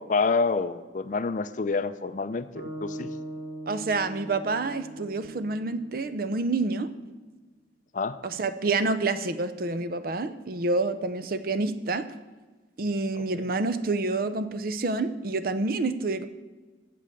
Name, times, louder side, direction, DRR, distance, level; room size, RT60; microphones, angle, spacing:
voice 1, 0.0-3.1 7.9-8.2 13.1-13.3, left 4 dB, 40° left, 12 dB, 0.4 m, -28 dB
sound 1, 2.5-6.8, right 1 dB, 35° right, 1.6 m, -41 dB
voice 2, 3.7-6.9 8.2-12.1 12.8-16.2, right 3 dB, 50° right, 11 dB, 0.5 m, -28 dB
8.4 x 7.7 x 7.0 m, 1.3 s
head